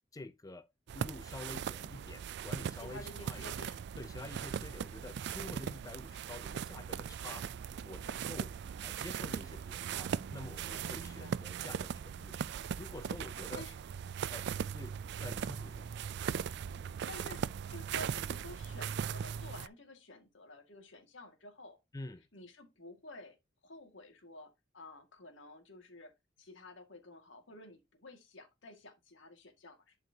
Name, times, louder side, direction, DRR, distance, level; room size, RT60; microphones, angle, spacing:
voice 1, 0.1-0.7 0.9-3.7 4.0-7.5 7.8-8.5 8.8-12.4 12.8-13.6 14.3-14.9 15.2-15.9 21.9-22.2, left 2 dB, 20° left, 0.4 m, -48 dB
sound 1, 0.9-19.7, right 7 dB, 65° right, 0.3 m, -39 dB
voice 2, 2.8-3.8 10.6-11.4 13.5-13.8 14.1-14.3 16.7-21.8 22.3-23.4 23.6-30.0, left 2 dB, 85° left, 2.0 m, -52 dB
11.5 x 4.8 x 2.8 m
head